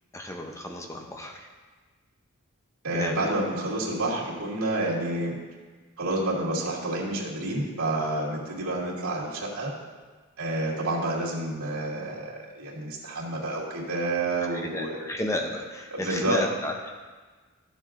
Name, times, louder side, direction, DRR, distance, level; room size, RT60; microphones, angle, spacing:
voice 1, 0.1-1.5 2.9-3.3 14.5-17.0, left 1 dB, 15° left, 2 dB, 0.6 m, -33 dB
voice 2, 2.8-5.3 6.0-9.7 10.4-15.0 15.9-16.4, right 2 dB, 85° right, -6 dB, 2.5 m, -29 dB
13.5 x 7.3 x 2.5 m, 1.4 s
head